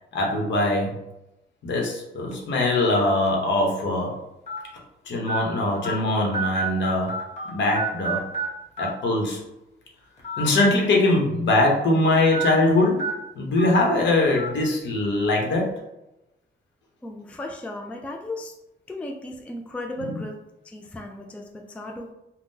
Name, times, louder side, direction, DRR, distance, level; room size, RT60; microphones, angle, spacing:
voice 1, 0.1-1.0 1.6-4.2 5.0-7.2 7.5-8.2 8.8-9.4 10.4-15.8 20.0-20.2, left 2 dB, 65° left, -1 dB, 0.9 m, -22 dB
sound 1, 2.3-2.5 3.3-3.4 4.5-4.6 5.3-5.4 5.8-6.0 6.3-7.5 7.7-8.5 8.8-8.9 10.2-10.5 10.8-10.9 12.3-12.5 13.0-13.1 13.6-13.7 14.4-14.5, right 4 dB, 35° left, 1.0 m, -28 dB
voice 2, 17.0-18.5 18.9-22.1, left 1 dB, 5° left, 2 dB, 0.3 m, -36 dB
3.6 x 2.2 x 2.7 m, 0.91 s
cardioid pair, 90°, 20 cm